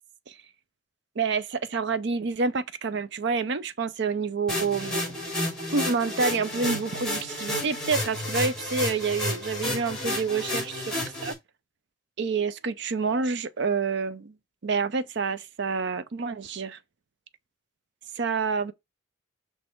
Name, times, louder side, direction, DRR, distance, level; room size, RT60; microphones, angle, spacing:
voice 1, 1.2-5.2 5.7-11.3 12.2-14.4 14.6-16.8 18.1-18.7, right 4 dB, 60° right, 0.5 m, -28 dB
sound 1, 4.5-11.3, left 1 dB, ahead, 3.2 m, -31 dB
6.2 x 3.4 x 4.5 m
head